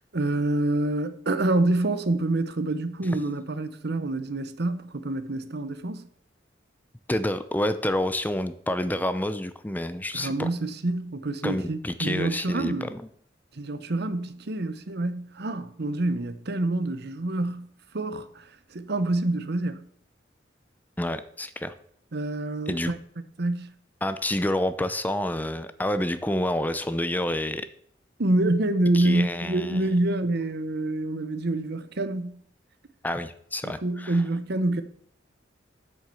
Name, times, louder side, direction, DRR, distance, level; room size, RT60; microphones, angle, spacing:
voice 1, 0.1-6.1 10.1-12.9 13.5-17.7 17.9-19.8 22.1-23.0 23.4-23.7 28.2-32.4 33.6-34.8, right 2 dB, 60° right, 0.9 m, -27 dB
voice 2, 7.1-10.5 11.4-13.0 21.0-21.7 22.7-22.9 24.0-27.7 28.9-29.9 33.0-34.2, left 1 dB, 10° left, 0.5 m, -28 dB
7.9 x 7.7 x 7.0 m
head